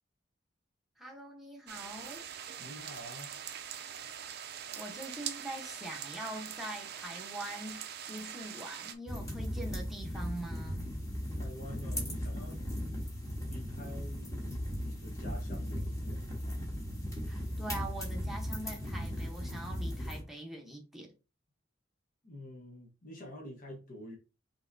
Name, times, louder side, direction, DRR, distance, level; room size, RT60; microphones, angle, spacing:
voice 1, 1.0-2.2 4.8-10.9 17.3-21.1, right 1 dB, ahead, 1.0 m, -43 dB
sound 1, 1.7-8.9, right 9 dB, 55° right, 0.5 m, -43 dB
voice 2, 2.6-3.4 11.3-12.6 13.5-14.4 14.8-16.6 22.2-24.2, left 1 dB, 45° left, 1.1 m, -48 dB
sound 2, 9.1-20.2, equal, 15° left, 1.5 m, -37 dB
5.6 x 2.9 x 2.7 m
head